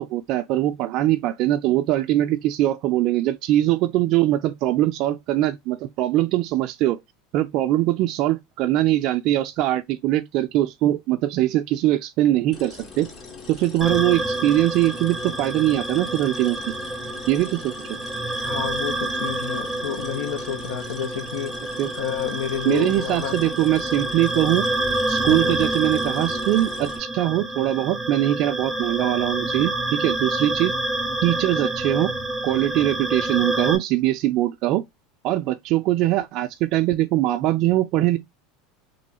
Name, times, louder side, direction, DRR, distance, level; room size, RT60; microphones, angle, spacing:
voice 1, 0.0-7.0 7.3-13.1 13.5-16.6 17.3-18.0 21.8-21.9 22.6-24.6 25.1-30.7 31.2-32.1 32.4-34.8 35.2-38.2, right 14 dB, 55° right, 0.3 m, -22 dB
sound 1, 12.5-27.0, left 4 dB, 35° left, 1.1 m, -41 dB
sound 2, 13.8-33.8, right 2 dB, 5° left, 0.8 m, -28 dB
voice 2, 18.4-21.6 21.9-23.5 25.3-25.6, left 9 dB, 80° left, 0.7 m, -30 dB
3.0 x 2.7 x 2.9 m
supercardioid pair, 120°, 0 cm